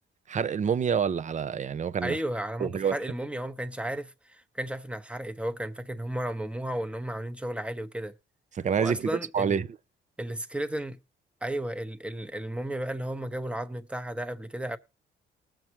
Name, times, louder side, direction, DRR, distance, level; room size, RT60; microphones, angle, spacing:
voice 1, 0.3-2.2 2.6-2.9 8.5-9.7, right 7 dB, 40° right, 0.6 m, -27 dB
voice 2, 2.0-8.1 8.8-9.6 10.2-11.0 11.4-14.8, right 1 dB, 5° right, 0.9 m, -33 dB
19.0 x 7.4 x 3.1 m
cardioid pair, 90°, 20 cm